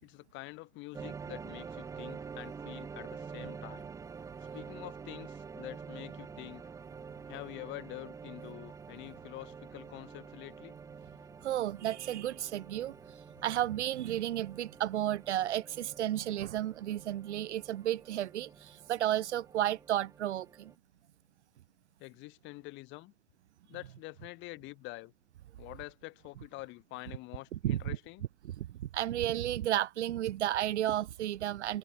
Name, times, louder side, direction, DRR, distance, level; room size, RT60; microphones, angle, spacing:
voice 1, 0.0-3.9 4.5-6.6 7.3-10.8 22.0-23.1 23.6-25.1 25.6-28.2, left 22 dB, 30° left, 2.2 m, -46 dB
sound 1, 0.9-20.8, right 6 dB, 10° right, 1.0 m, -47 dB
voice 2, 11.4-13.0 13.4-20.7 27.5-28.0 28.4-31.8, right 12 dB, 60° right, 1.2 m, -33 dB
hypercardioid pair, 130°, 39 cm